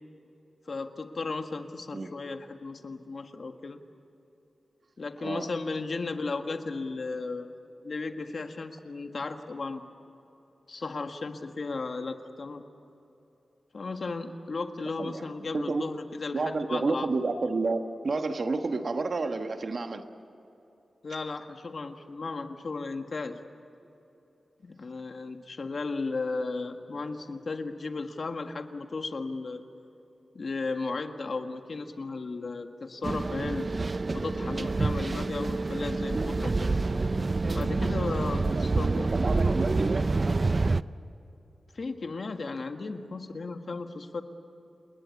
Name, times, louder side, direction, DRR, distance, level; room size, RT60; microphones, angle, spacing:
voice 1, 0.7-3.8 5.0-7.5 7.8-9.8 10.7-12.6 13.7-17.1 21.0-23.4 24.6-29.6 30.3-33.7 34.1-36.7 37.5-39.1 41.7-44.2, left 3 dB, 55° left, 6 dB, 1.7 m, -35 dB
voice 2, 15.0-15.3 15.5-15.8 16.3-20.0 38.4-38.6 38.9-40.1, right 3 dB, 50° right, 7 dB, 1.3 m, -30 dB
sound 1, 33.0-40.8, right 3 dB, 35° right, 0.5 m, -27 dB
30.0 x 20.0 x 8.4 m, 3.0 s
wide cardioid pair, 130°, 0 cm